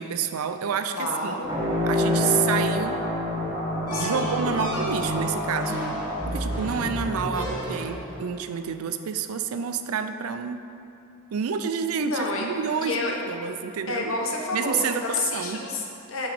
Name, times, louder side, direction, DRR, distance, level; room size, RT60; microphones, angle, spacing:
voice 1, 0.0-1.4 1.8-3.0 3.9-5.8 6.3-10.6 11.3-13.0 13.3-14.1 14.5-15.6, right 7 dB, 85° right, 9 dB, 0.4 m, -29 dB
voice 2, 0.9-1.5 3.9-4.6 12.0-12.5 12.8-13.1 13.9-16.3, left 3 dB, 70° left, 0 dB, 1.0 m, -29 dB
sound 1, 1.4-7.6, left 1 dB, 20° right, 1.5 m, -27 dB
sound 2, 3.9-8.2, equal, 20° left, 1.5 m, -36 dB
sound 3, 6.2-8.2, equal, 5° left, 0.9 m, -34 dB
6.1 x 6.0 x 5.0 m, 2.6 s
head